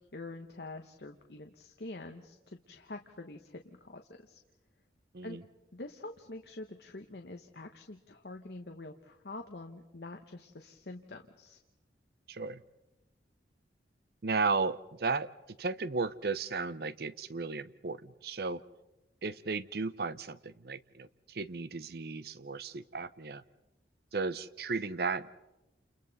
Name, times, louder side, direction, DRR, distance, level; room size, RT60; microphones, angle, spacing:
voice 1, 0.1-4.4 5.2-5.4 5.7-11.6, left 2 dB, 65° left, 4 dB, 1.1 m, -46 dB
voice 2, 12.3-12.6 14.2-15.3 15.6-18.6 19.2-23.4 24.1-25.3, right 4 dB, 60° right, 15 dB, 0.7 m, -34 dB
29.5 x 29.0 x 4.1 m, 0.99 s
head